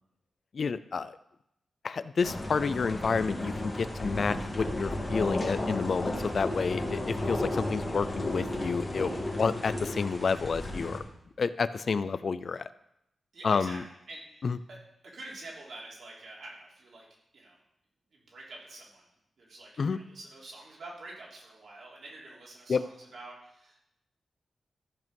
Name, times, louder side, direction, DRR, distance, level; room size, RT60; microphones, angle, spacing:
voice 1, 0.5-1.1 1.8-9.1 9.4-11.0 11.4-12.7 13.4-13.8 14.4-14.6 19.8-20.0 22.7-22.8, left 5 dB, 55° left, 15 dB, 0.4 m, -29 dB
sound 1, 2.2-11.0, left 1 dB, 25° left, 2.2 m, -33 dB
voice 2, 13.3-13.8 14.1-17.1 17.3-17.6 18.1-19.0 19.4-23.8, right 2 dB, 70° right, -4 dB, 3.3 m, -47 dB
13.5 x 5.5 x 5.3 m, 0.81 s
wide cardioid pair, 110°, 0 cm